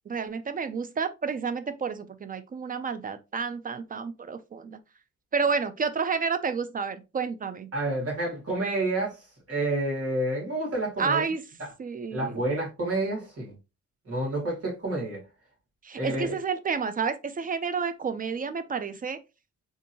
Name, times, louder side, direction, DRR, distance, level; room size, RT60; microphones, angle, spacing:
voice 1, 0.1-4.8 5.3-7.7 11.0-11.4 11.8-12.4 15.8-19.2, right 5 dB, 30° right, 0.4 m, -30 dB
voice 2, 7.7-11.2 12.1-13.5 14.1-15.2 16.0-16.3, right 2 dB, 50° right, 2.1 m, -29 dB
3.7 x 2.6 x 2.7 m
cardioid pair, 90°, 30 cm